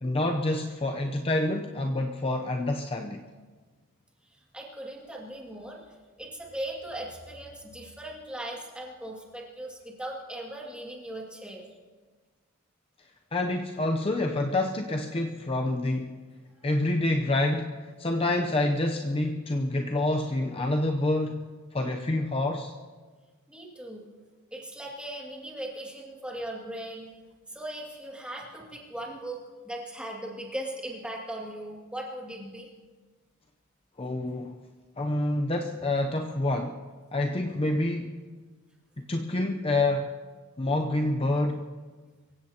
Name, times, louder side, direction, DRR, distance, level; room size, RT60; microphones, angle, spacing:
voice 1, 0.0-3.2 13.3-16.2 16.6-22.7 34.0-34.6 35.0-36.8 37.1-38.2 39.1-40.1 40.6-41.7, left 2 dB, 25° left, 4 dB, 0.6 m, -27 dB
voice 2, 4.3-5.9 6.2-11.6 16.6-16.7 23.5-24.1 24.5-27.1 27.5-32.7, right 1 dB, 5° right, -2 dB, 2.3 m, -39 dB
24.5 x 15.5 x 2.9 m, 1.4 s
head